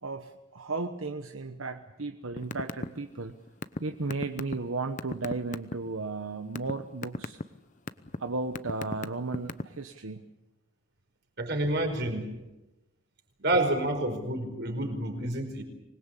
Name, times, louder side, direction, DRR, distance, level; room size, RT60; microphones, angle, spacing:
voice 1, 0.0-3.3 3.8-7.4 8.2-10.2, right 3 dB, 75° right, 7 dB, 1.2 m, -35 dB
sound 1, 2.4-2.9 3.1-5.7 6.3-6.7 7.0-7.4 7.9-8.2 8.5-9.8, left 2 dB, 35° left, 0.8 m, -33 dB
voice 2, 11.4-12.3 13.4-15.6, right 1 dB, 50° right, 5 dB, 4.9 m, -29 dB
25.0 x 20.5 x 8.3 m, 1.0 s
head